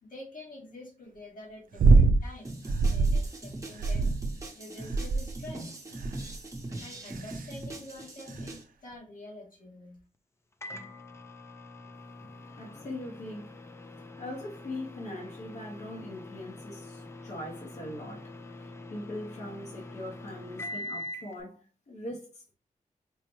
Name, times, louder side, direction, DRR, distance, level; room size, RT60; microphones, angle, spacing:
voice 1, 0.0-2.6 2.9-4.0 4.5-5.7 6.8-10.0, left 1 dB, 75° left, 1.4 m, -47 dB
sound 1, 1.8-2.2 2.7-3.3 3.8-4.4 4.9-5.4 6.0-6.4 7.1-7.4 8.4-8.5, right 3 dB, 75° right, 0.4 m, -22 dB
sound 2, 2.4-8.6, right 2 dB, 20° right, 0.8 m, -41 dB
Microwave oven, 10.6-21.4, left 2 dB, 20° left, 0.3 m, -44 dB
voice 2, 12.6-13.5 14.2-18.3 18.5-22.5, left 1 dB, 55° left, 0.9 m, -41 dB
4.7 x 2.1 x 3.0 m
wide cardioid pair, 120°, 14 cm